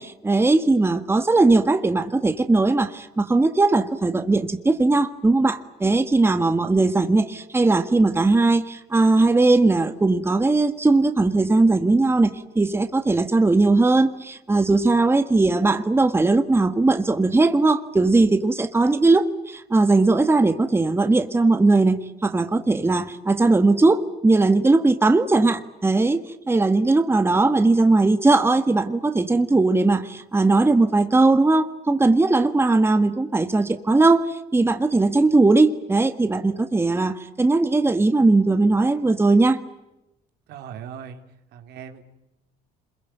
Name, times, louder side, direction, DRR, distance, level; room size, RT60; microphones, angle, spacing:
voice 1, 0.0-39.6, right 3 dB, 15° right, 1.6 m, -19 dB
voice 2, 40.5-41.2 41.5-42.0, right 8 dB, 80° right, 3.2 m, -38 dB
27.0 x 22.5 x 9.1 m
cardioid pair, 110°, 17 cm